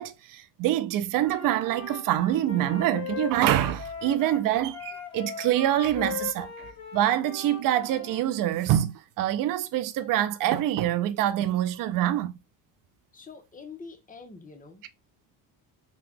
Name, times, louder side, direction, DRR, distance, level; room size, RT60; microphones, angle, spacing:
voice 1, 0.0-12.4, right 12 dB, 50° right, 0.5 m, -25 dB
Wind instrument woodwind instrument, 1.2-8.2, left 7 dB, 35° left, 1.6 m, -39 dB
voice 2, 13.1-14.8, left 4 dB, 20° left, 0.9 m, -45 dB
2.9 x 2.3 x 3.4 m
supercardioid pair, 85°, 43 cm